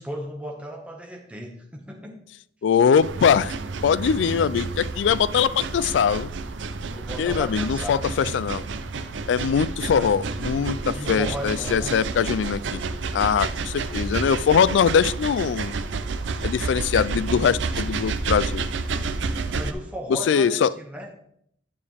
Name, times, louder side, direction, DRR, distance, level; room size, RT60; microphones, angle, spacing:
voice 1, 0.0-2.1 6.9-8.1 9.9-10.1 10.9-12.0 19.4-21.1, equal, 5° right, 0 dB, 1.5 m, -35 dB
voice 2, 2.6-3.6 3.8-6.3 7.2-8.6 9.3-12.8 13.1-15.7 16.4-18.7 20.1-20.7, left 7 dB, 75° left, 19 dB, 0.3 m, -22 dB
sound 1, 3.0-19.7, right 4 dB, 85° right, 0.6 m, -30 dB
9.6 x 6.9 x 3.4 m, 0.70 s
head